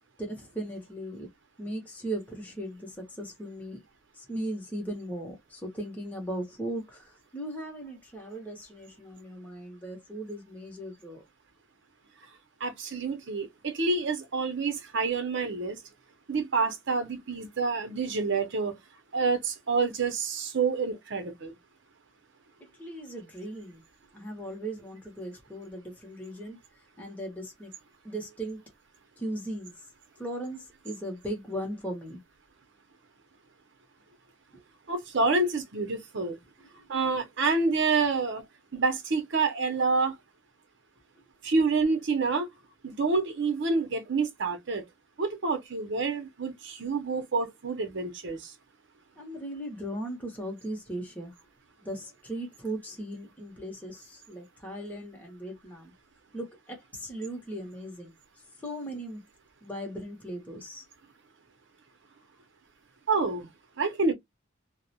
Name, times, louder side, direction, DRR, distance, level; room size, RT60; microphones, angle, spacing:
voice 1, 0.2-1.3 1.6-3.8 4.1-11.2 22.8-23.8 24.1-26.6 27.0-27.7 28.0-28.6 29.2-29.7 30.2-32.2 34.5-34.6 36.8-36.9 49.2-51.3 51.8-55.9 56.3-58.1 58.6-59.2 59.6-60.8, right 1 dB, 10° left, 0.7 m, -38 dB
voice 2, 12.6-15.8 16.3-18.8 19.1-21.5 34.9-36.4 36.9-38.4 38.7-40.2 41.4-42.5 42.8-44.8 45.2-48.5 63.1-63.5 63.8-64.1, right 4 dB, 60° right, 0.7 m, -28 dB
2.3 x 2.1 x 2.7 m
head